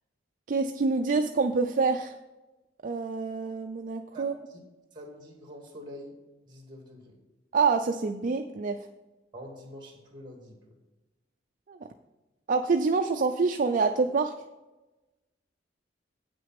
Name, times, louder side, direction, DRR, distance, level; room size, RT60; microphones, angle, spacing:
voice 1, 0.5-2.1 2.8-4.3 7.5-8.9 11.7-11.8 12.5-14.3, right 4 dB, 45° right, 6 dB, 0.4 m, -26 dB
voice 2, 4.1-4.6 4.9-6.2 6.5-7.2 9.3-10.8, equal, 25° right, 1 dB, 2.3 m, -46 dB
8.8 x 6.2 x 5.9 m, 1.1 s
head